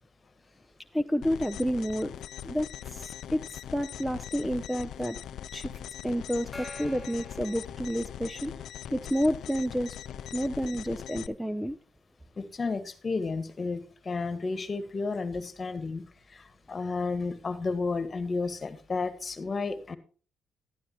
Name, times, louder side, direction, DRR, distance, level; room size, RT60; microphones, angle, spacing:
voice 1, 0.9-2.1 2.4-3.4 3.7-5.2 5.5-5.7 6.0-8.5 8.9-10.0 10.3-11.8, equal, ahead, 0.6 m, -30 dB
sound 1, 1.2-11.3, left 10 dB, 70° left, 0.5 m, -41 dB
Gong, 6.5-8.6, left 2 dB, 20° left, 1.6 m, -46 dB
voice 2, 12.4-20.0, left 4 dB, 35° left, 1.7 m, -32 dB
12.0 x 11.5 x 3.0 m
cardioid pair, 90°, 0 cm